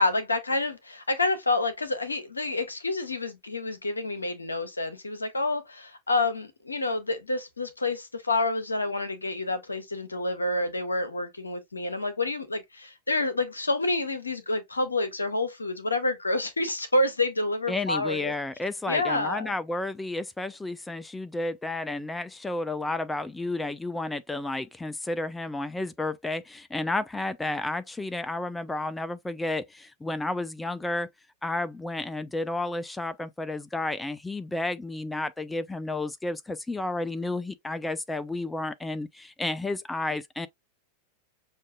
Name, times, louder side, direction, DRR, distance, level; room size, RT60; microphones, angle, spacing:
voice 1, 0.0-18.3 18.9-19.5, left 2 dB, 80° left, 0.8 m, -28 dB
voice 2, 17.7-31.1 31.4-40.5, left 2 dB, 10° left, 0.3 m, -32 dB
6.3 x 2.5 x 2.2 m
figure-of-eight pair, 90°, 0 cm